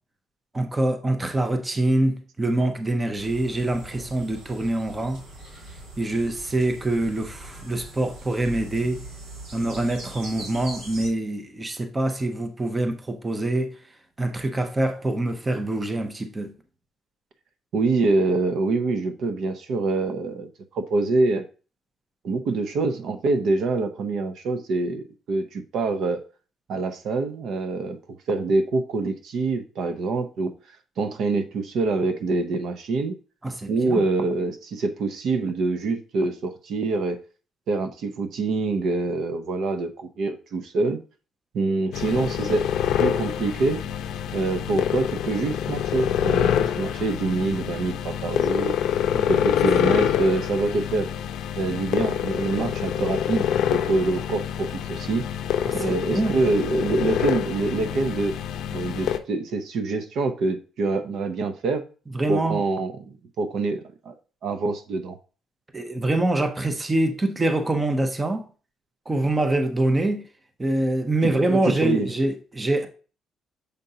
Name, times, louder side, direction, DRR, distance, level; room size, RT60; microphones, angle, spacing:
voice 1, 0.5-5.2 6.0-9.0 9.5-13.8 14.2-16.5 33.4-34.0 49.1-49.5 55.6-56.4 62.1-62.6 65.7-68.5 69.1-70.2 70.6-72.9, right 2 dB, 15° right, 0.6 m, -25 dB
sound 1, 3.2-11.1, right 1 dB, 80° right, 2.6 m, -41 dB
voice 2, 17.7-20.5 20.7-21.4 22.2-26.2 26.7-28.0 28.3-30.5 31.0-33.2 33.7-37.2 37.7-41.0 41.5-42.7 43.0-43.8 44.3-48.7 49.3-51.1 51.6-55.3 55.7-58.3 58.7-61.9 62.3-64.1 64.4-65.2 71.2-72.1, right 3 dB, 55° right, 0.7 m, -25 dB
sound 2, 41.9-59.2, left 10 dB, 65° left, 0.5 m, -26 dB
6.6 x 5.1 x 2.7 m
cardioid pair, 170°, 0 cm